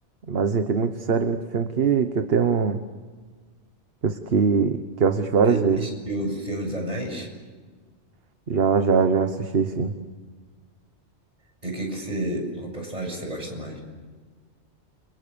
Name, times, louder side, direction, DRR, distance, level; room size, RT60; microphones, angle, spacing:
voice 1, 0.3-2.8 4.0-5.8 8.5-10.0, right 5 dB, 55° right, 8 dB, 1.3 m, -22 dB
voice 2, 5.4-7.3 11.6-13.8, right 1 dB, 30° right, 2 dB, 7.2 m, -30 dB
29.5 x 25.5 x 6.9 m, 1.5 s
omnidirectional pair, 1.2 m